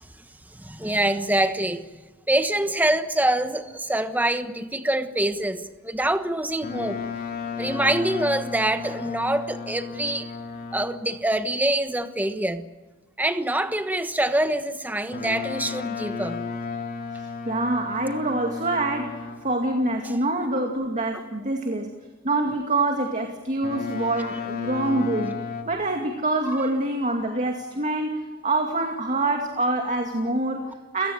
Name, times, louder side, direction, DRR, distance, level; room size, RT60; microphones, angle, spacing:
voice 1, 0.6-1.9 2.3-7.1 7.6-10.3 10.7-12.6 13.2-16.4 20.0-20.2, right 1 dB, 10° right, 1.3 m, -25 dB
Boat Water vehicle, 6.6-11.1 15.1-19.6 23.6-25.6, left 5 dB, 45° left, 3.0 m, -33 dB
voice 2, 17.4-21.9 22.2-25.4 25.7-31.1, right 2 dB, 35° right, 2.3 m, -25 dB
29.5 x 17.5 x 9.1 m
head